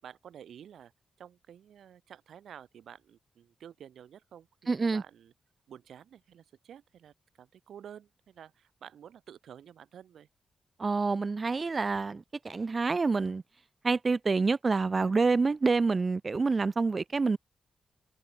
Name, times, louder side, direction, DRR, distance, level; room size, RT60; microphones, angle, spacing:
voice 1, 0.0-0.9 1.2-5.3 5.7-10.3, right 9 dB, 90° right, 5.6 m, -51 dB
voice 2, 4.7-5.0 10.8-13.4 13.8-17.4, right 4 dB, 30° right, 1.0 m, -27 dB
wide cardioid pair, 135°, 0 cm